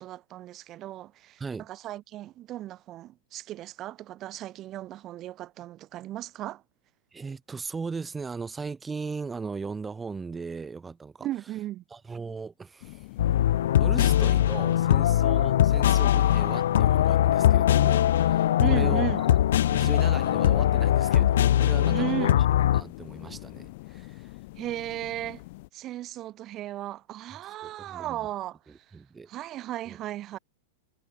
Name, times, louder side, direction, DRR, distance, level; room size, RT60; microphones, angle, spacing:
voice 1, 0.0-6.6 11.2-11.8 14.0-14.1 18.6-19.2 21.9-22.4 24.6-25.4 25.7-29.0 29.3-30.4, right 14 dB, 35° right, 1.6 m, -35 dB
voice 2, 7.1-11.3 11.9-13.0 13.7-19.3 19.7-22.3 22.7-24.3 27.6-28.3 28.7-29.3 29.9-30.0, right 4 dB, 15° right, 1.6 m, -38 dB
sound 1, 12.8-25.7, left 22 dB, 60° left, 2.5 m, -43 dB
sound 2, 13.2-22.8, left 11 dB, 75° left, 0.4 m, -21 dB
hypercardioid pair, 120°, 0 cm